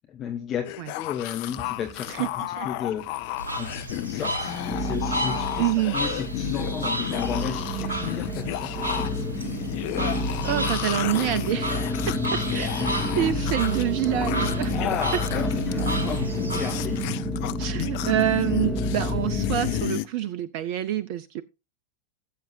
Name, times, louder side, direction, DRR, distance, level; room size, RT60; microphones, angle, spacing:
voice 1, 0.1-3.2 3.6-8.8 12.8-13.1 14.7-17.1, left 8 dB, 30° left, 1.1 m, -33 dB
sound 1, 0.6-20.1, left 17 dB, 50° left, 0.5 m, -33 dB
sound 2, 1.5-2.5 2.7-3.4 3.9-4.0 4.7-19.9, left 1 dB, 5° right, 4.2 m, -30 dB
voice 2, 2.1-2.7 5.6-6.0 10.0-11.8 12.1-12.8 13.1-14.8 17.6-21.4, right 13 dB, 45° right, 0.5 m, -27 dB
sound 3, 3.4-17.1, right 1 dB, 75° right, 2.0 m, -33 dB
17.5 x 7.6 x 2.7 m
figure-of-eight pair, 90°, 0 cm